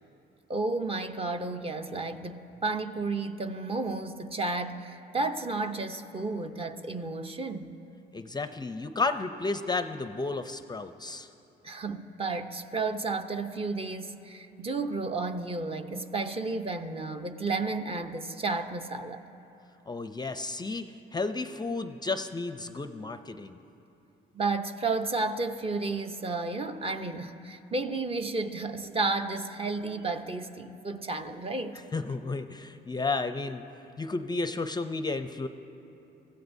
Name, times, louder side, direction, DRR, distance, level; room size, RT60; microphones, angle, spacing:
voice 1, 0.5-7.8 11.6-19.2 24.3-31.8, right 3 dB, 30° right, 7 dB, 0.7 m, -32 dB
voice 2, 8.1-11.3 19.9-23.6 31.9-33.6 34.0-35.5, left 3 dB, 20° left, 9 dB, 0.5 m, -32 dB
23.0 x 15.5 x 2.7 m, 2.9 s
cardioid pair, 90°, 20 cm